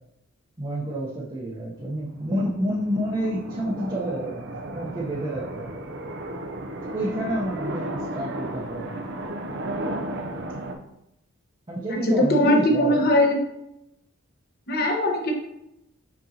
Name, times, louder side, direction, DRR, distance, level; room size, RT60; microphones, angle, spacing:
voice 1, 0.6-4.5 4.7-5.7 6.8-8.9 11.7-13.0, right 1 dB, 20° right, -5 dB, 0.9 m, -29 dB
sound 1, 1.8-10.7, right 1 dB, 55° right, 0.7 m, -34 dB
voice 2, 11.9-13.4 14.7-15.3, left 1 dB, 45° left, 0 dB, 1.2 m, -20 dB
6.4 x 5.2 x 2.9 m, 0.83 s
head